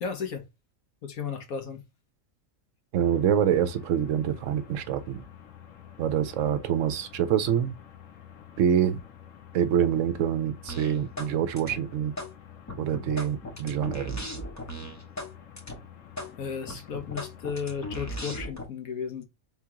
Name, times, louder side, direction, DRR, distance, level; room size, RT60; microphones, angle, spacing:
voice 1, 0.0-0.4 1.0-1.8 16.4-19.2, left 6 dB, 90° left, 1.4 m, -34 dB
voice 2, 2.9-5.2 6.0-7.7 8.6-9.0 9.5-12.1 12.8-14.4, right 9 dB, 75° right, 0.9 m, -26 dB
sound 1, 3.0-18.4, left 9 dB, 75° left, 1.2 m, -49 dB
sound 2, 10.7-11.3 11.6-12.3 12.7-15.3 15.6-15.8 16.2-16.3 16.7-18.7, equal, 20° left, 0.5 m, -37 dB
3.6 x 2.9 x 3.6 m
omnidirectional pair, 1.4 m